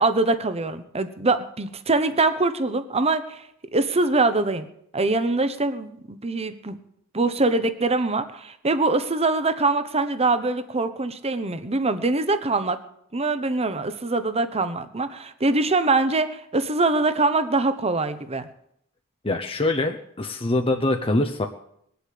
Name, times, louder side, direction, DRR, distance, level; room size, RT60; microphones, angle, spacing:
voice 1, 0.0-3.4 3.7-4.7 4.9-6.8 7.1-12.8 13.1-18.5, right 3 dB, 30° right, 11 dB, 1.0 m, -23 dB
voice 2, 19.2-21.5, left 2 dB, 25° left, 4 dB, 0.9 m, -24 dB
20.5 x 8.1 x 8.5 m, 0.74 s
head